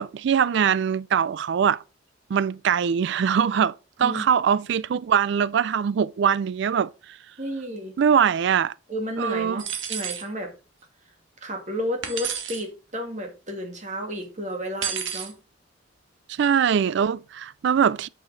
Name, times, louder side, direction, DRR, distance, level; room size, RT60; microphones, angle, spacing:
voice 1, 0.0-1.8 2.3-6.9 8.0-8.7 9.2-9.6 16.3-18.1, right 7 dB, 65° right, 0.3 m, -22 dB
voice 2, 7.4-7.9 8.9-10.5 11.4-15.4, equal, 40° right, 2.1 m, -32 dB
sound 1, 9.6-10.3 12.0-12.6 14.8-15.3, right 8 dB, 85° right, 1.5 m, -30 dB
8.8 x 5.9 x 4.0 m
head